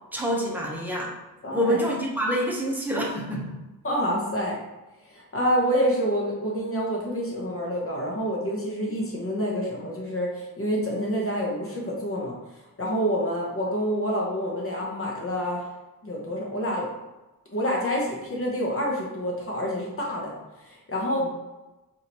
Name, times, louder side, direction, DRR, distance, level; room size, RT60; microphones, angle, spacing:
voice 1, 0.1-1.1 1.5-3.6 21.2-21.3, equal, 5° right, -3 dB, 0.9 m, -27 dB
voice 2, 1.4-1.8 3.8-4.6 5.0-15.7 16.0-16.9 17.5-21.3, equal, 35° left, -3 dB, 1.0 m, -27 dB
5.0 x 2.7 x 2.9 m, 1.0 s
wide cardioid pair, 105°, 37 cm